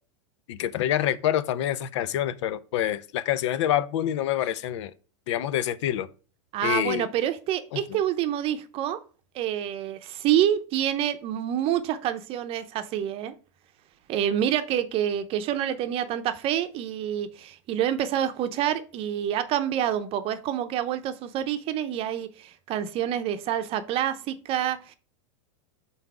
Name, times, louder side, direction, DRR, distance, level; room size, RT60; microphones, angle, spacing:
voice 1, 0.5-4.9 5.3-6.1 6.6-7.1 7.7-7.8, left 11 dB, 65° left, 0.6 m, -26 dB
voice 2, 6.5-9.0 9.3-13.3 14.1-24.9, right 10 dB, 35° right, 0.7 m, -27 dB
5.8 x 4.1 x 4.7 m
supercardioid pair, 130°, 16 cm